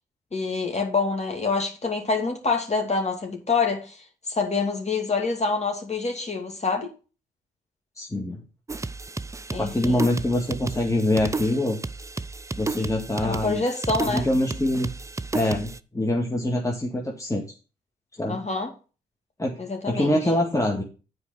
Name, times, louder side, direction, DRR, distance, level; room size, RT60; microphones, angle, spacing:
voice 1, 0.3-4.0 4.3-6.9 9.5-10.1 13.2-14.3 18.3-18.7 19.6-20.2, left 4 dB, 35° left, 2.8 m, -26 dB
voice 2, 8.0-8.4 9.6-11.8 12.6-13.6 14.0-14.9 15.3-17.5 18.2-18.4 19.4-19.6 19.8-20.8, left 1 dB, 15° left, 1.9 m, -24 dB
sound 1, 8.7-15.8, right 3 dB, 15° right, 0.5 m, -33 dB
8.4 x 4.8 x 6.7 m
hypercardioid pair, 40°, 19 cm